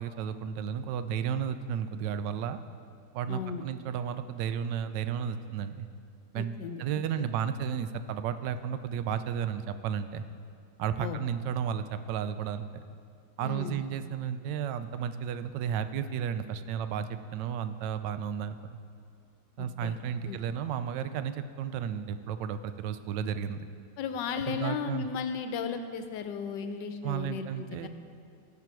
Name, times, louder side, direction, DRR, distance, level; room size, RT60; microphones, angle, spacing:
voice 1, 0.0-2.6 3.1-5.9 6.3-10.2 10.8-12.7 13.4-18.8 19.6-23.7 24.5-25.1 27.0-27.9, right 8 dB, 90° right, 11 dB, 1.2 m, -33 dB
voice 2, 3.3-3.6 6.3-6.8 7.2-7.3 11.0-11.3 13.4-13.8 19.6-20.0 20.2-20.4 24.0-27.9, left 6 dB, 85° left, 8 dB, 1.3 m, -35 dB
16.5 x 5.9 x 4.6 m, 2.3 s
omnidirectional pair, 1.9 m